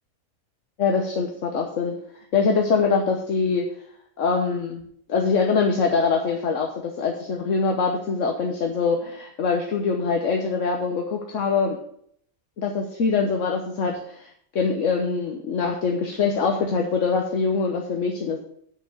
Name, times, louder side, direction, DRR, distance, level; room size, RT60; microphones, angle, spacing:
voice 1, 0.8-2.0 2.3-3.7 4.2-4.8 5.1-11.8 12.6-18.4, left 5 dB, 70° left, 2 dB, 1.4 m, -23 dB
8.0 x 6.0 x 7.7 m, 0.66 s
omnidirectional pair, 1.4 m